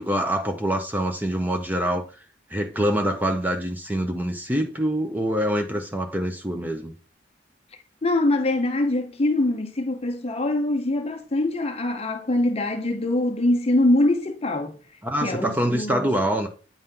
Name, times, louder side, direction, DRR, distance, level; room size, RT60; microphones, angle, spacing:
voice 1, 0.0-2.0 2.5-6.9 15.0-16.5, equal, 10° right, 0.8 m, -25 dB
voice 2, 8.0-14.8 15.2-16.1, left 1 dB, 30° left, 0.6 m, -23 dB
9.0 x 4.2 x 3.7 m
head